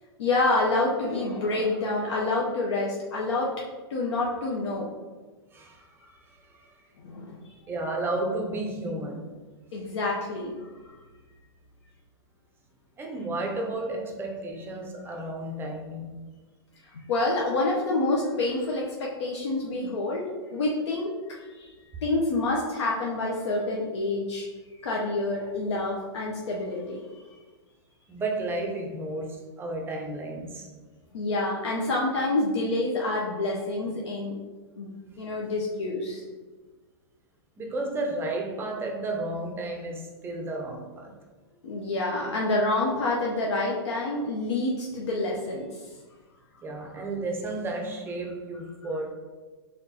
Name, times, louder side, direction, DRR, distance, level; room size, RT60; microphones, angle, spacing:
voice 1, 0.2-3.5 3.9-4.9 7.0-7.5 9.7-11.0 16.9-21.7 22.0-24.5 24.8-27.2 31.1-34.3 34.8-34.9 35.2-36.2 41.6-45.8, left 2 dB, 80° left, -3 dB, 0.7 m, -28 dB
voice 2, 5.5-5.9 6.3-6.7 7.7-9.3 13.0-16.2 28.1-30.7 37.6-41.1 46.6-49.1, right 2 dB, 15° right, 2 dB, 0.5 m, -32 dB
5.0 x 3.1 x 2.8 m, 1.3 s
hypercardioid pair, 140°, 14 cm